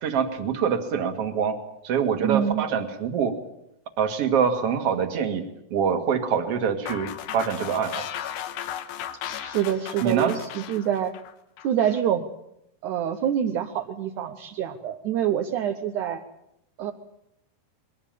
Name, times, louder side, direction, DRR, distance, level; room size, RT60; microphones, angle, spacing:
voice 1, 0.0-1.6 1.8-3.3 4.0-5.4 5.7-7.1 7.3-8.1 10.0-10.3, right 7 dB, 45° right, 7 dB, 2.3 m, -24 dB
voice 2, 2.2-2.7 9.4-11.1 11.6-12.3 12.8-16.2 16.8-16.9, right 9 dB, 70° right, 5 dB, 1.9 m, -26 dB
sound 1, 6.9-12.0, left 10 dB, 80° left, 3.4 m, -36 dB
22.0 x 18.0 x 9.1 m, 0.82 s
omnidirectional pair, 4.8 m